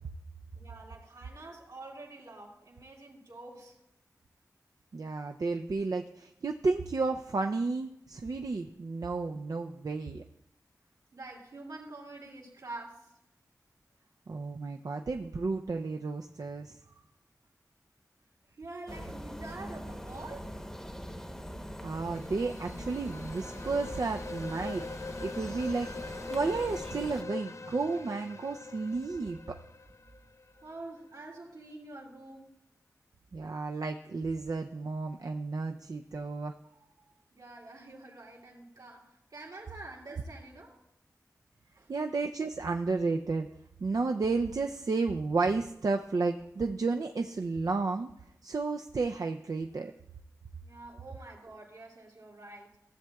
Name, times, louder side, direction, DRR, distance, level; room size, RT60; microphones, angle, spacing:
voice 1, 0.5-3.8 11.1-13.1 16.8-17.0 18.6-20.5 30.6-32.5 37.3-40.8 41.7-41.9 50.6-52.8, right 2 dB, 85° right, -3 dB, 2.4 m, -47 dB
voice 2, 4.9-10.2 14.3-16.8 21.8-24.8 25.2-29.6 33.3-36.5 41.9-43.5 43.8-48.1 48.4-49.9, right 3 dB, 65° right, 3 dB, 0.4 m, -32 dB
sound 1, 18.9-27.2, equal, 10° left, 0.9 m, -42 dB
sound 2, 22.0-30.8, left 3 dB, 45° left, 0.4 m, -43 dB
15.0 x 7.4 x 2.3 m, 0.85 s
cardioid pair, 40°, 7 cm